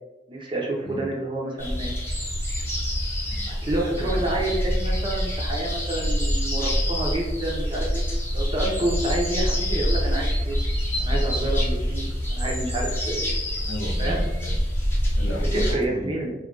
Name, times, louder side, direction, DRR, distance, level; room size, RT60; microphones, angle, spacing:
voice 1, 0.3-1.9 3.5-8.0 8.3-10.6 11.0-13.4 14.0-14.2 15.5-16.3, right 1 dB, 30° right, -1 dB, 0.6 m, -29 dB
sound 1, 1.6-15.7, equal, 10° left, 0.7 m, -26 dB
voice 2, 13.6-14.6 15.2-16.2, left 1 dB, 70° left, 0 dB, 0.6 m, -34 dB
2.4 x 2.2 x 3.6 m, 1.0 s
head